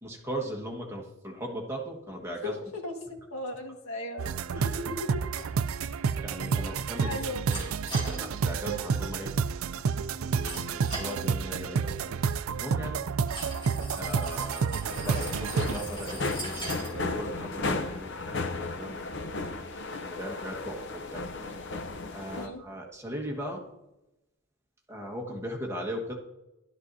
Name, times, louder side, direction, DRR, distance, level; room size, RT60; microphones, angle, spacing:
voice 1, 0.0-2.6 4.6-4.7 6.2-9.3 10.2-12.1 12.6-13.0 14.0-19.0 20.0-21.3 22.1-23.7 24.9-26.2, right 1 dB, 10° right, 0 dB, 1.4 m, -38 dB
voice 2, 2.4-5.2 7.0-7.4 22.3-22.6, left 2 dB, 85° left, 3 dB, 1.7 m, -37 dB
sound 1, 4.2-15.8, right 6 dB, 75° right, 0.4 m, -30 dB
sound 2, 5.3-18.6, right 1 dB, 25° left, 3.7 m, -43 dB
sound 3, 14.8-22.5, left 3 dB, 55° left, 0.7 m, -35 dB
12.5 x 12.5 x 2.7 m, 0.94 s
head